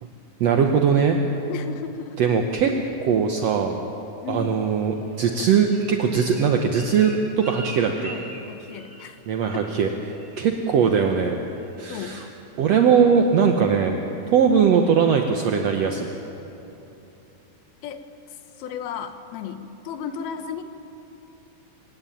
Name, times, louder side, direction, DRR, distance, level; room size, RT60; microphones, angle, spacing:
voice 1, 0.4-1.2 2.2-2.7 3.0-3.8 4.3-8.1 9.3-9.9 10.4-11.4 11.8-12.2 12.6-13.9 14.3-16.1, right 6 dB, 75° right, 3 dB, 1.5 m, -20 dB
voice 2, 1.5-2.2 4.2-4.6 8.0-9.2 9.5-9.6 11.9-12.2 17.8-18.1 18.6-20.6, left 7 dB, 75° left, 9 dB, 2.9 m, -34 dB
Bird, 5.1-9.2 9.4-9.8 10.1-10.4 10.8-11.1 11.5-11.6, right 2 dB, 20° right, 4.4 m, -42 dB
26.0 x 17.5 x 9.2 m, 2.9 s
omnidirectional pair, 4.6 m